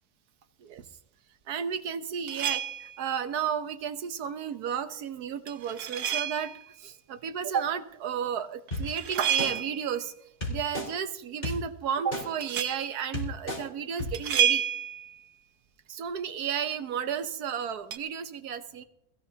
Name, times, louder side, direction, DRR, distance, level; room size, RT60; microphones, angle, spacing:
voice 1, 1.5-6.5 6.8-10.1 10.5-14.7 15.9-18.8, right 8 dB, 80° right, 10 dB, 1.5 m, -33 dB
sound 1, 2.3-3.0 5.5-6.6 8.7-9.9 12.4-12.9 14.1-15.2 17.9-18.0, right 9 dB, 65° right, 1.2 m, -30 dB
sound 2, 8.7-8.8 9.4-9.5 10.4-10.9 11.4-11.5 12.1-12.2 12.8-12.9 13.1-13.6 14.0-14.1, left 1 dB, 35° left, 4.3 m, -31 dB
21.0 x 15.5 x 2.8 m, 0.78 s
omnidirectional pair, 1.6 m